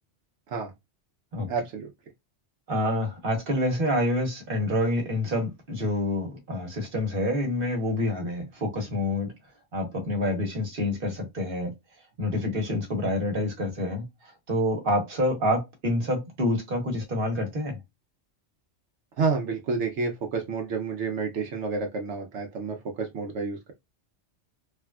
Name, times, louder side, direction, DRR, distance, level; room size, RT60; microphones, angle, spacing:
voice 1, 1.5-1.9 19.2-23.6, right 4 dB, 75° right, 1.0 m, -29 dB
voice 2, 2.7-9.3 9.7-11.7 12.2-17.8, left 1 dB, 50° right, 1.2 m, -27 dB
3.4 x 2.3 x 2.3 m
omnidirectional pair, 1.2 m